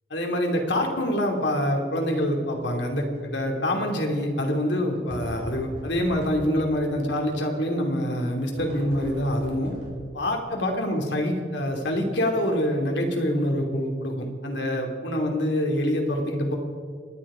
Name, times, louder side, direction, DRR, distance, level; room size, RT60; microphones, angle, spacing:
voice 1, 0.1-9.7 10.1-16.6, equal, 75° left, 2 dB, 2.6 m, -25 dB
sound 1, 2.5-2.8 3.2-3.3 5.1-7.0 8.6-10.3, equal, 70° right, 4.7 m, -40 dB
27.5 x 9.9 x 5.0 m, 2.1 s
head